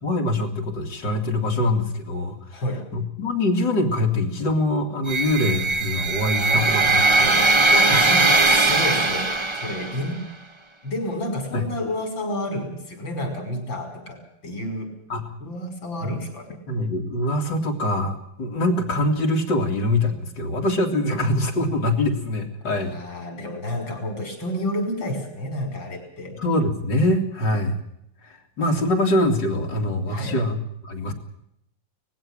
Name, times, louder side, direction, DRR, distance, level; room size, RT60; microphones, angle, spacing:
voice 1, 0.0-2.6 2.9-8.1 11.5-11.6 15.1-15.4 16.0-16.1 16.7-23.0 26.3-27.8 28.2-31.1, left 1 dB, 65° left, 3 dB, 3.3 m, -24 dB
sound 1, 5.1-10.1, right 3 dB, 20° right, 1.0 m, -20 dB
voice 2, 7.7-10.2 10.8-14.2 14.4-14.9 15.4-16.6 22.6-26.3 30.1-30.4, left 1 dB, 80° left, 5 dB, 6.0 m, -30 dB
20.0 x 15.5 x 8.8 m, 0.76 s
omnidirectional pair, 2.1 m